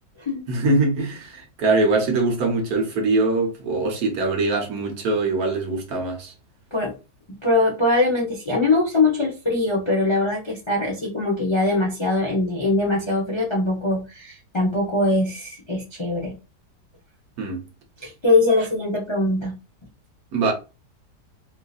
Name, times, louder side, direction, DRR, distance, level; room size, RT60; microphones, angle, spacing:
voice 1, 0.5-6.3 17.4-17.7 20.3-20.5, right 3 dB, 65° right, 1.2 m, -22 dB
voice 2, 7.4-16.4 18.0-19.6, left 2 dB, 40° left, 0.4 m, -22 dB
3.7 x 2.6 x 2.4 m
omnidirectional pair, 1.9 m